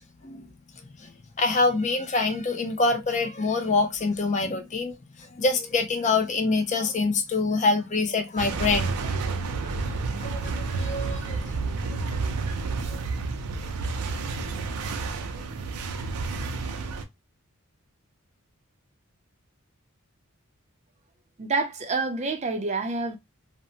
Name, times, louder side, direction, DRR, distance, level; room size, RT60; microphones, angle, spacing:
voice 1, 1.4-4.9 5.4-9.1 10.2-11.5 11.8-12.2 12.9-13.0, left 3 dB, 35° left, 0.4 m, -25 dB
sound 1, 8.4-17.0, right 4 dB, 85° right, 0.4 m, -30 dB
voice 2, 21.4-23.2, right 3 dB, 30° right, 0.4 m, -27 dB
2.7 x 2.0 x 2.7 m
head